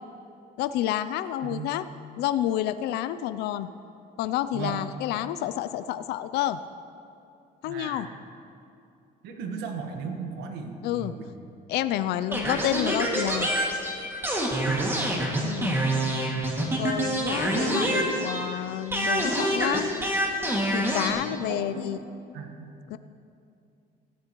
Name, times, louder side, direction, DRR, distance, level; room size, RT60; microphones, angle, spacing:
voice 1, 0.6-1.8 2.2-3.7 4.2-6.6 7.6-8.1 10.8-11.1 11.7-13.5 15.4-15.7 16.7-19.9 20.7-22.0 22.9-23.0, left 12 dB, 75° left, 13 dB, 0.4 m, -29 dB
voice 2, 7.6-8.1 9.2-11.3 14.7-15.3 21.1-21.9 22.3-23.0, right 5 dB, 85° right, 4 dB, 1.4 m, -37 dB
sound 1, 12.3-18.6 18.9-21.1, right 1 dB, 15° right, 2.1 m, -26 dB
17.0 x 13.5 x 3.0 m, 2.6 s
cardioid pair, 110°, 17 cm